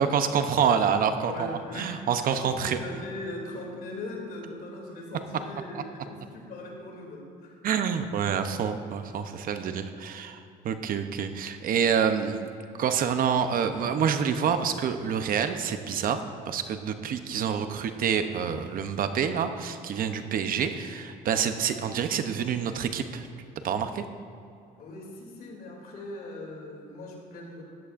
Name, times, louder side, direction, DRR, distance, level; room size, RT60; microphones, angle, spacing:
voice 1, 0.0-2.8 7.6-12.5 12.8-23.3 23.6-24.1, right 7 dB, 60° right, 8 dB, 0.8 m, -27 dB
voice 2, 1.2-7.7 24.8-27.6, left 2 dB, 65° left, -1 dB, 2.8 m, -40 dB
15.5 x 11.0 x 2.6 m, 2.5 s
cardioid pair, 110°, 17 cm